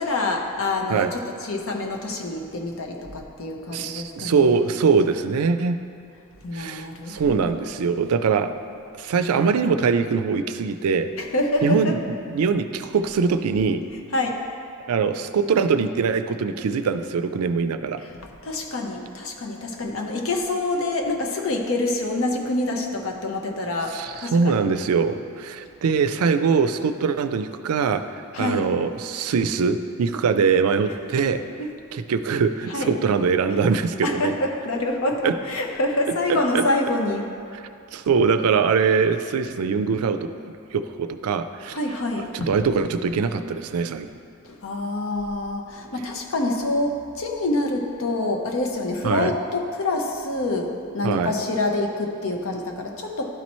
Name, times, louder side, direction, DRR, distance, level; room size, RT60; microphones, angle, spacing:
voice 1, 0.0-4.5 6.4-7.6 11.2-12.0 14.1-14.5 18.0-24.7 28.3-28.7 31.6-31.7 32.7-33.0 34.0-37.3 41.7-42.5 44.4-53.3, left 2 dB, 65° left, 2 dB, 0.7 m, -26 dB
voice 2, 3.7-5.8 6.5-8.5 8.9-11.1 11.6-12.0 12.3-13.8 14.9-18.0 23.9-28.1 28.4-31.4 31.9-34.3 35.2-35.3 36.3-36.6 37.9-40.3 40.7-41.8 42.3-44.1 49.0-49.3 51.0-51.3, right 5 dB, 85° right, 10 dB, 0.4 m, -22 dB
11.5 x 4.2 x 3.0 m, 2.4 s
head